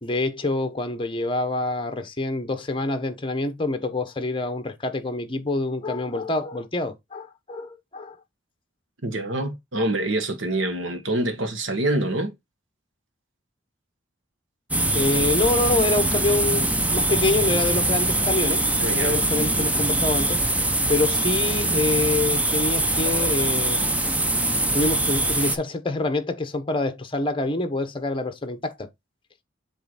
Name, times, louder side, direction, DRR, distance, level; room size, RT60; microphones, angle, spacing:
voice 1, 0.0-8.2 14.9-18.6 18.9-20.4 20.9-23.8 24.7-28.9, left 2 dB, 25° left, 1.0 m, -26 dB
voice 2, 9.0-12.3 18.8-19.2, right 1 dB, 75° right, 1.5 m, -26 dB
sound 1, 14.7-25.6, right 2 dB, 5° right, 0.6 m, -23 dB
7.8 x 3.1 x 4.1 m
head